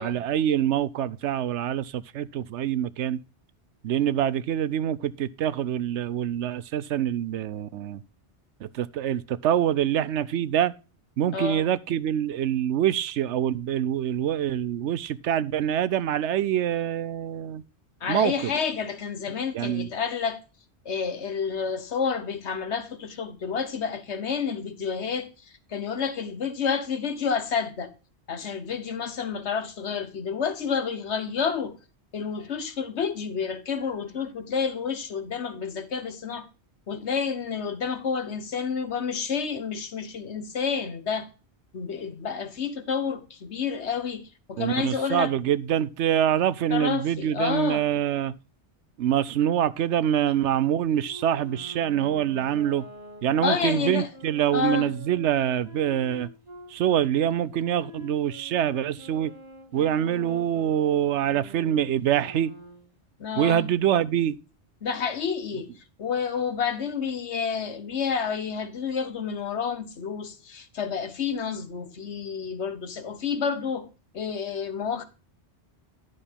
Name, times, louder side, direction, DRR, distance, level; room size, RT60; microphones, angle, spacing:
voice 1, 0.0-3.2 3.8-8.0 8.6-10.7 11.2-17.6 18.1-18.5 19.5-19.9 44.6-48.3 49.0-52.9 53.2-56.3 56.7-59.3 59.7-62.5 63.4-64.4, right 10 dB, 85° right, 0.9 m, -25 dB
voice 2, 11.3-11.7 18.0-20.4 20.8-27.9 28.3-31.7 32.1-36.5 36.9-41.3 41.7-45.3 46.7-47.8 53.4-54.1 54.5-54.9 63.2-63.7 64.8-73.9 74.1-75.0, left 6 dB, 75° left, 1.4 m, -29 dB
Wind instrument woodwind instrument, 50.9-56.7 57.5-62.9, equal, 60° right, 3.5 m, -44 dB
11.0 x 6.5 x 3.5 m
omnidirectional pair, 1.2 m